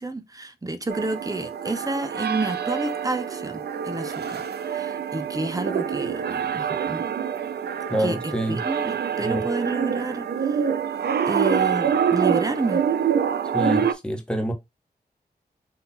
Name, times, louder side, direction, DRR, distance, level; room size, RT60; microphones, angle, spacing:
voice 1, 0.0-4.4 4.7-7.1 8.0-10.6 11.3-12.8, right 2 dB, 20° right, 0.8 m, -30 dB
sound 1, 0.9-13.9, right 7 dB, 75° right, 0.4 m, -26 dB
voice 2, 7.9-8.6 9.2-9.5 13.5-14.5, right 1 dB, 5° left, 1.3 m, -26 dB
4.0 x 2.8 x 4.0 m
wide cardioid pair, 80°, 17 cm